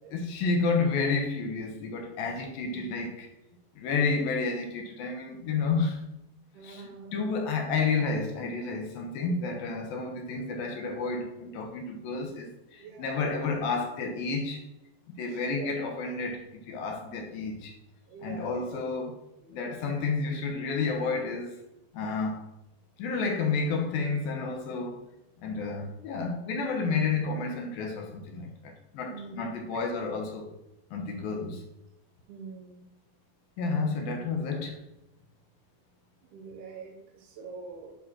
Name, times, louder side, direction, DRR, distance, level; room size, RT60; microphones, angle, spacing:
voice 1, 0.1-3.3 3.8-6.0 6.6-14.6 15.2-17.7 18.2-19.2 19.5-21.6 21.9-22.5 23.0-25.0 25.4-30.6 30.9-31.6 33.6-34.8, left 4 dB, 70° left, 2.4 m, -30 dB
voice 2, 2.8-3.1 3.9-4.2 6.5-7.2 12.8-13.3 15.3-15.8 18.1-18.7 19.4-19.8 29.1-29.8 32.3-32.9 36.3-37.9, right 4 dB, 70° right, 2.9 m, -45 dB
11.5 x 4.1 x 6.2 m
omnidirectional pair, 5.0 m